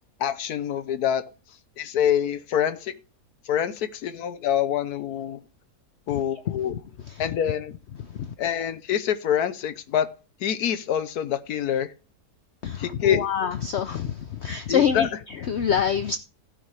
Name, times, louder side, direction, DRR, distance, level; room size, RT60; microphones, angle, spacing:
voice 1, 0.2-1.2 1.8-2.9 3.4-5.4 6.1-6.7 7.2-7.7 8.4-10.1 10.4-11.9 12.8-13.3 14.7-15.1, left 9 dB, 75° left, 1.3 m, -25 dB
voice 2, 12.6-16.2, left 8 dB, 60° left, 0.7 m, -26 dB
16.0 x 6.2 x 3.3 m
omnidirectional pair, 1.7 m